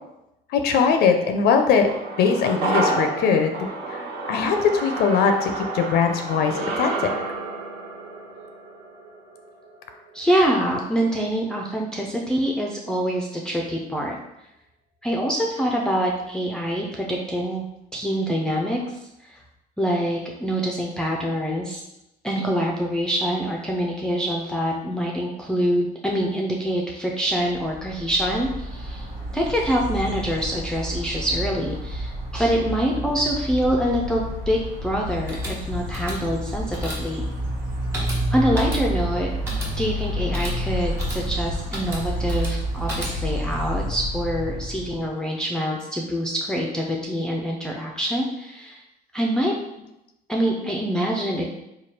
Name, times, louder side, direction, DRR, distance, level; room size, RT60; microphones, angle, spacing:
voice 1, 0.5-1.9 2.2-3.5 3.9-6.9, left 6 dB, 70° left, 5 dB, 0.5 m, -21 dB
sound 1, 1.9-10.4 10.7-10.8, right 2 dB, 70° right, 1.1 m, -30 dB
voice 2, 10.1-14.2 15.0-17.7 17.9-19.4 19.8-21.8 22.2-29.1 29.3-37.2 38.3-39.3 39.8-48.8 49.1-49.5 50.3-51.5, equal, 5° left, -2 dB, 0.4 m, -25 dB
sound 2, 27.5-45.1, equal, 90° right, 1.2 m, -29 dB
sound 3, 35.1-43.5, equal, 15° right, 1.4 m, -36 dB
3.2 x 2.3 x 4.3 m, 0.88 s
cardioid pair, 110°, 17 cm